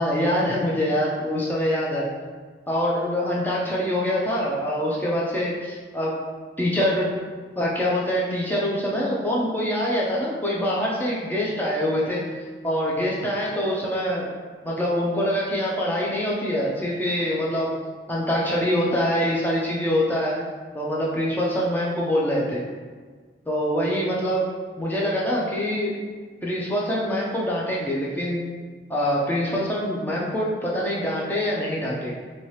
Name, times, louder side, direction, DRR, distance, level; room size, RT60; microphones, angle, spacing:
voice 1, 0.0-2.1 2.7-6.1 6.6-7.1 7.6-12.2 12.6-14.3 14.6-17.7 18.1-20.4 20.7-22.6 23.5-24.5 24.8-26.0 26.4-28.4 28.9-32.1, equal, 10° left, -5 dB, 0.5 m, -24 dB
2.8 x 2.7 x 3.1 m, 1.5 s
head